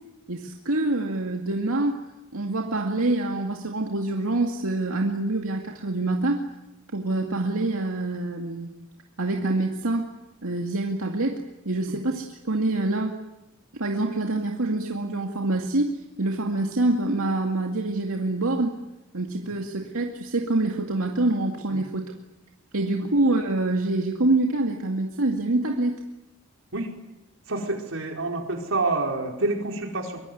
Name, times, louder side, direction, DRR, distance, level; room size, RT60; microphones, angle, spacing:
voice 1, 0.3-2.0 2.3-6.4 6.9-8.7 9.2-10.1 10.4-13.2 13.7-18.8 19.1-22.1 22.7-26.0, right 2 dB, 85° right, 2 dB, 2.3 m, -26 dB
voice 2, 27.5-30.2, right 2 dB, 65° right, 2 dB, 5.0 m, -28 dB
24.0 x 23.5 x 9.4 m, 0.94 s
head